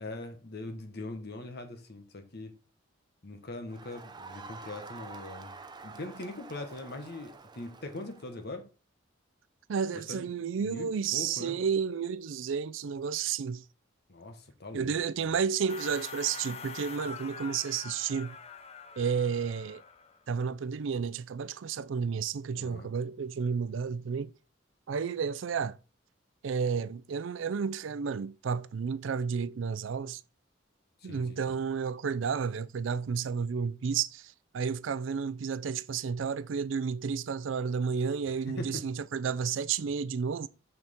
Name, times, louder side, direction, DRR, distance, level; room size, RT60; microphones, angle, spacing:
voice 1, 0.0-2.5 3.2-5.5 5.8-8.7 9.9-10.3 10.5-11.6 14.1-14.9 15.2-15.3 22.5-22.9 31.0-31.6 38.2-38.8, left 2 dB, 55° left, 1.2 m, -41 dB
Crowd, 3.7-8.5, right 4 dB, 20° right, 0.5 m, -48 dB
voice 2, 9.7-13.6 14.7-18.3 19.0-19.8 20.3-24.3 24.9-25.8 26.4-30.2 31.0-40.5, right 6 dB, 70° right, 0.4 m, -31 dB
sound 1, 15.7-20.2, left 6 dB, 30° left, 0.5 m, -44 dB
6.6 x 5.9 x 3.6 m
head